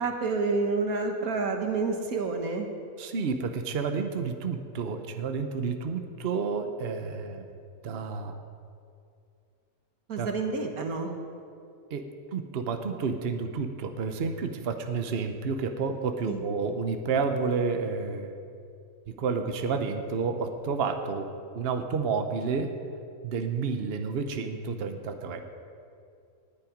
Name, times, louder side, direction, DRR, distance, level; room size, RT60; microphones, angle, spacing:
voice 1, 0.0-2.7 10.1-11.1 16.3-16.4, right 4 dB, 85° right, 3 dB, 1.8 m, -29 dB
voice 2, 3.0-7.5 7.8-8.3 10.2-10.3 11.9-18.4 19.1-22.8 23.2-25.4, right 5 dB, 50° right, 6 dB, 1.0 m, -30 dB
19.5 x 8.8 x 5.1 m, 2.4 s
omnidirectional pair, 1.5 m